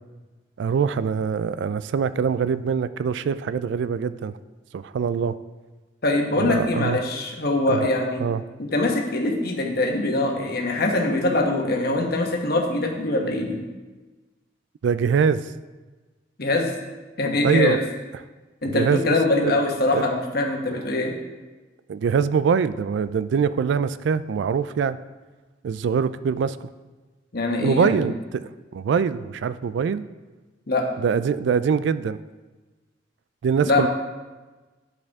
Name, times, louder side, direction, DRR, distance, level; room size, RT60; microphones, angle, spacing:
voice 1, 0.6-4.3 4.7-5.3 6.4-7.0 7.7-7.8 8.2-8.4 14.8-15.5 17.4-17.8 18.6-19.2 19.4-19.5 19.9-20.0 21.9-25.0 25.6-26.7 27.6-30.0 31.0-32.2 33.4-33.9, right 6 dB, 70° right, 15 dB, 0.3 m, -23 dB
voice 2, 6.0-8.2 8.6-13.6 16.4-16.7 17.2-17.8 18.6-21.1 27.3-27.9 30.7-30.9 33.7-33.9, left 2 dB, 55° left, 2 dB, 1.1 m, -23 dB
10.0 x 5.2 x 3.6 m, 1.2 s
head